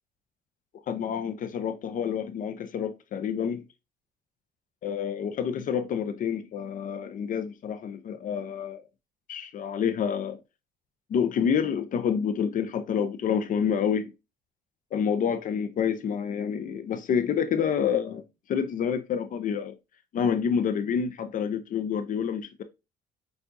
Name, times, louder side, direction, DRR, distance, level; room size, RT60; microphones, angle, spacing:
voice 1, 0.9-3.6 4.8-8.8 9.3-10.4 11.1-14.1 14.9-18.2 18.5-19.7 20.1-22.6, left 7 dB, 50° left, 0.7 m, -28 dB
6.8 x 2.5 x 2.6 m
cardioid pair, 110°, 17 cm